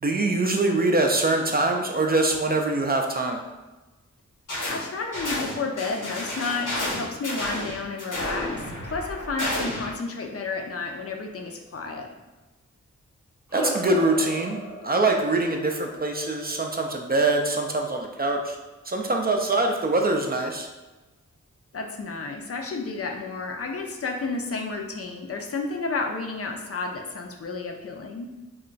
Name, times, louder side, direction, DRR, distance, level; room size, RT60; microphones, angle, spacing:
voice 1, 0.0-3.4 13.5-14.6 14.8-18.6 18.9-20.7, right 2 dB, 30° right, 2 dB, 0.4 m, -23 dB
sound 1, 4.5-4.8 5.1-9.9, left 1 dB, 90° left, 1.1 m, -31 dB
voice 2, 4.7-12.1 21.7-28.3, left 3 dB, 50° left, 2 dB, 0.5 m, -31 dB
sound 2, 13.5-18.3, equal, 5° right, 0.8 m, -37 dB
2.3 x 2.1 x 3.9 m, 1.1 s
cardioid pair, 50°, 30 cm